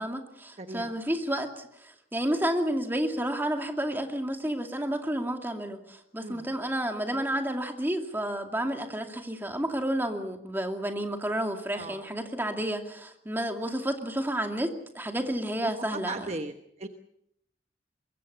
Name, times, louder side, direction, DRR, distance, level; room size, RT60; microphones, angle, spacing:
voice 1, 0.0-16.2, right 1 dB, 10° right, 4 dB, 2.4 m, -31 dB
voice 2, 0.6-0.9 6.2-6.5 11.7-12.1 15.6-16.9, right 2 dB, 35° right, 6 dB, 1.1 m, -38 dB
24.0 x 22.0 x 6.9 m, 0.75 s
head